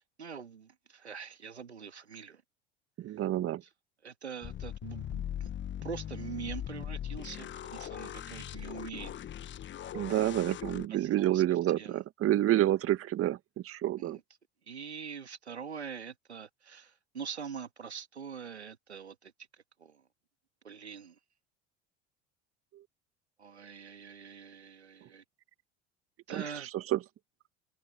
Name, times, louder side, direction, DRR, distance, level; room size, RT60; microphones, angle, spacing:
voice 1, 0.0-2.4 4.0-5.5 5.8-9.1 11.0-11.4 11.8-12.0 14.0-14.2 14.7-19.3 19.8-20.0 20.6-21.2 23.4-25.2 26.3-26.7, right 6 dB, 90° right, 2.0 m, -44 dB
voice 2, 3.0-3.6 9.9-13.4 13.6-14.2 26.3-27.0, right 13 dB, 45° right, 2.0 m, -29 dB
sound 1, 4.4-10.9, left 10 dB, 35° left, 1.4 m, -40 dB
open air
hypercardioid pair, 75°, 32 cm